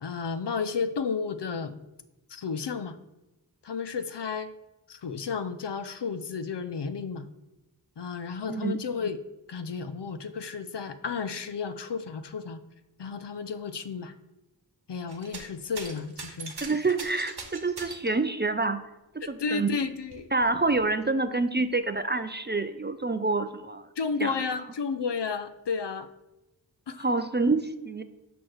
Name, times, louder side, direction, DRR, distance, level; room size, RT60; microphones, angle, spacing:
voice 1, 0.0-1.8 2.3-3.0 3.6-4.5 4.9-7.3 8.0-9.2 9.5-12.6 13.0-14.1 14.9-16.5 19.4-20.3 24.0-26.1 26.9-27.0, left 5 dB, 70° left, 10 dB, 0.6 m, -32 dB
voice 2, 8.5-8.8 16.6-18.8 19.1-19.7 20.3-23.9 24.2-24.4 27.0-28.0, right 3 dB, 25° right, 10 dB, 0.4 m, -27 dB
sound 1, 15.1-15.5 15.7-18.2 19.2-19.3 19.8-20.8 21.7-21.8, right 3 dB, 60° right, 1.1 m, -41 dB
8.3 x 3.0 x 6.2 m, 0.97 s
wide cardioid pair, 55°, 43 cm